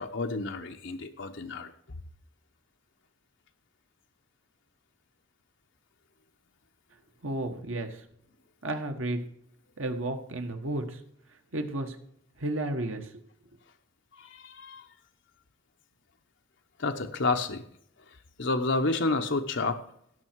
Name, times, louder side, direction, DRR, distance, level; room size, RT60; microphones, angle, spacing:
voice 1, 0.0-1.7 14.2-14.8 16.8-17.6 18.4-19.8, left 3 dB, 60° left, 4 dB, 0.8 m, -30 dB
voice 2, 7.2-8.0 8.6-9.2 9.8-11.0 11.5-12.0 12.4-13.1, right 1 dB, 75° right, 5 dB, 1.6 m, -32 dB
17.0 x 6.4 x 4.6 m, 0.69 s
head